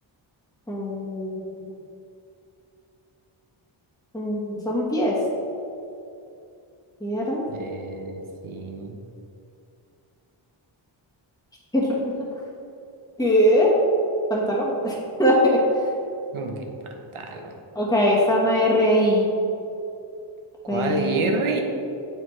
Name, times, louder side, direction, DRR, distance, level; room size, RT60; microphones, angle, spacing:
voice 1, 0.7-1.3 4.1-5.1 7.0-7.4 11.7-12.1 13.2-13.8 14.3-15.6 17.7-19.3 20.7-21.3, equal, 5° left, -5 dB, 1.2 m, -21 dB
voice 2, 7.5-9.0 16.3-16.7 17.1-17.6 20.7-21.6, right 3 dB, 80° right, 3 dB, 0.9 m, -28 dB
7.6 x 4.6 x 3.2 m, 2.6 s
wide cardioid pair, 75°, 49 cm